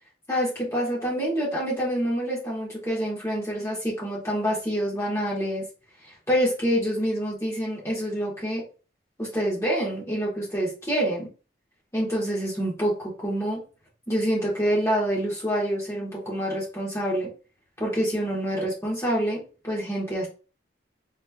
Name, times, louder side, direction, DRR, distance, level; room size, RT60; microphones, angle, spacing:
voice 1, 0.3-5.6 6.3-8.6 9.2-11.3 11.9-13.6 14.1-17.3 17.8-20.3, equal, 15° left, -6 dB, 1.5 m, -27 dB
4.3 x 3.0 x 2.4 m, 0.36 s
head